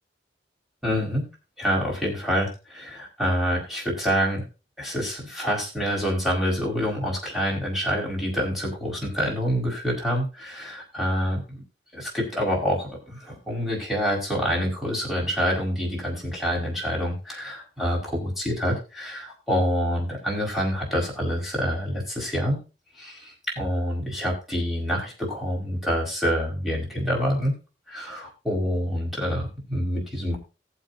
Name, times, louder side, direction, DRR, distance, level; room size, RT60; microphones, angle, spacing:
voice 1, 0.8-1.3 1.6-4.4 4.8-11.6 11.9-22.6 23.0-27.5 27.9-30.4, equal, ahead, -3 dB, 5.1 m, -27 dB
18.5 x 7.5 x 2.7 m, 0.32 s
head